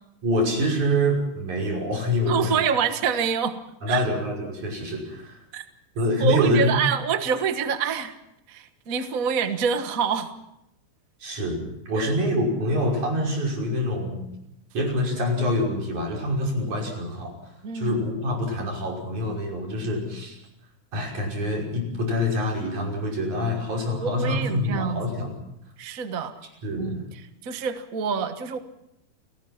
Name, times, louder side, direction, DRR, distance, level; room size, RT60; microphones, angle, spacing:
voice 1, 0.2-2.6 3.8-5.4 6.0-6.7 11.2-14.3 14.7-17.3 17.7-20.4 20.9-25.3 26.6-27.0, left 1 dB, 70° right, 0 dB, 7.2 m, -26 dB
voice 2, 2.2-3.6 3.9-4.0 5.5-5.6 6.2-8.1 8.5-10.3 11.9-12.1 17.6-18.0 23.9-25.1 25.8-26.3 26.8-27.0 27.4-28.6, right 7 dB, 45° right, 8 dB, 1.2 m, -26 dB
29.5 x 19.0 x 5.8 m, 0.82 s
omnidirectional pair, 3.5 m